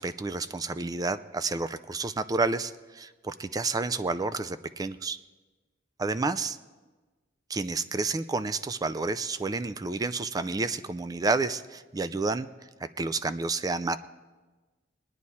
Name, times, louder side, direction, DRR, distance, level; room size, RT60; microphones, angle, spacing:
voice 1, 0.0-5.2 6.0-6.6 7.5-12.5 13.0-14.0, right 3 dB, 20° right, 14 dB, 0.3 m, -30 dB
21.0 x 9.6 x 4.2 m, 1.3 s
head